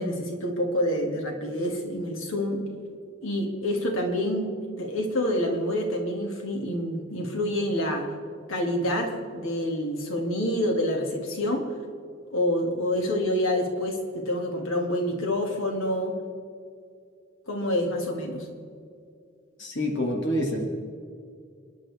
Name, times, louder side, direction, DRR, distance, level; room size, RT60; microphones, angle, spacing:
voice 1, 0.0-2.7 3.2-8.1 8.5-11.7 12.3-14.0 14.2-16.2 17.5-18.5, left 1 dB, 90° left, 1 dB, 2.5 m, -27 dB
voice 2, 19.6-20.6, left 1 dB, 65° left, 0 dB, 2.2 m, -27 dB
29.0 x 11.0 x 3.6 m, 2.3 s
head